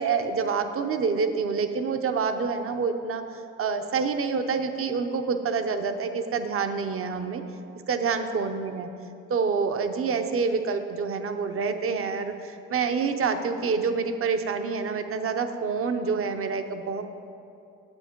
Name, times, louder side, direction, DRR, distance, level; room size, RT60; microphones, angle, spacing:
voice 1, 0.0-7.4 7.9-8.9 9.3-17.0, right 5 dB, 45° right, 7 dB, 0.8 m, -27 dB
9.8 x 8.0 x 4.5 m, 2.7 s
cardioid pair, 90°, 30 cm